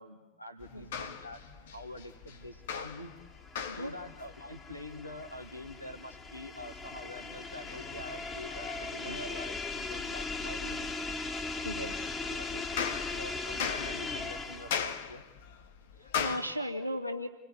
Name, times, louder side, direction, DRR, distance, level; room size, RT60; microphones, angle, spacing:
voice 1, 0.0-1.4 1.7-3.1 3.7-11.0 12.3-15.2, left 1 dB, 90° left, 6 dB, 1.7 m, -46 dB
sound 1, 0.6-16.4, left 7 dB, 55° left, 2.1 m, -41 dB
sound 2, 3.0-14.9, left 3 dB, 15° left, 3.0 m, -39 dB
voice 2, 11.6-12.1 16.0-17.3, equal, 85° right, 6 dB, 2.4 m, -36 dB
28.5 x 20.5 x 9.7 m, 1.1 s
figure-of-eight pair, 90°, 0 cm